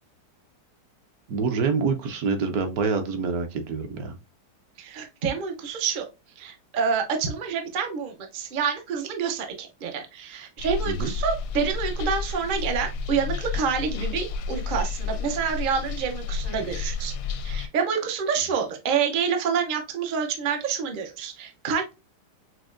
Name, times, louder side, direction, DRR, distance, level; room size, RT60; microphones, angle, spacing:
voice 1, 1.3-4.2 10.8-11.1, right 5 dB, 70° right, 7 dB, 1.0 m, -26 dB
voice 2, 4.8-6.0 6.4-17.1 17.4-21.9, right 6 dB, 90° right, 4 dB, 0.4 m, -28 dB
sound 1, 10.6-17.7, left 4 dB, 70° left, 0.8 m, -31 dB
6.0 x 2.1 x 2.4 m, 0.27 s
omnidirectional pair, 1.9 m